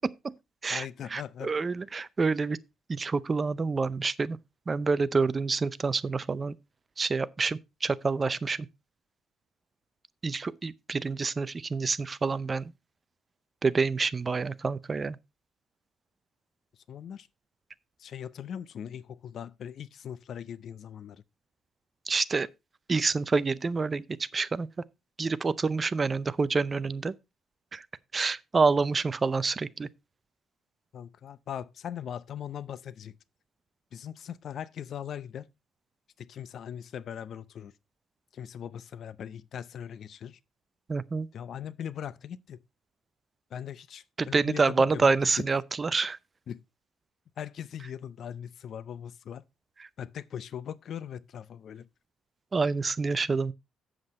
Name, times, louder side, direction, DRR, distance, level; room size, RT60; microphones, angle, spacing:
voice 1, 0.0-0.3 0.6-2.6 2.9-4.4 4.7-6.6 7.0-8.7 10.2-12.7 13.6-15.2 22.1-22.5 22.9-24.1 24.3-24.7 25.2-27.1 27.7-27.9 28.1-29.9 40.9-41.3 44.2-46.2 52.5-53.5, right 4 dB, 30° right, 0.5 m, -27 dB
voice 2, 0.7-1.5 16.7-17.3 18.0-21.2 30.9-33.1 33.9-35.5 36.2-37.7 38.3-40.4 41.3-42.6 43.5-45.5 46.5-46.6 47.4-49.4 50.0-51.9, left 9 dB, 60° left, 0.6 m, -40 dB
8.0 x 7.6 x 4.2 m
cardioid pair, 110°, 0 cm